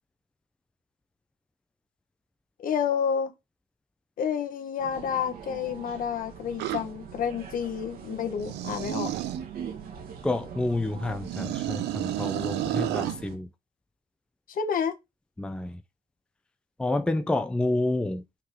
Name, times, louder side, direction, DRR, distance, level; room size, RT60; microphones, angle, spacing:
voice 1, 2.6-3.3 4.2-9.1 14.5-14.9, left 7 dB, 55° left, 1.4 m, -29 dB
sound 1, 4.8-13.4, right 7 dB, 60° right, 1.6 m, -42 dB
sound 2, 6.6-6.8 8.4-9.4 11.2-13.2, right 13 dB, 80° right, 0.9 m, -31 dB
voice 2, 10.2-13.5 15.4-15.8 16.8-18.2, left 2 dB, 5° left, 0.5 m, -29 dB
5.7 x 3.8 x 6.0 m
cardioid pair, 110°, 17 cm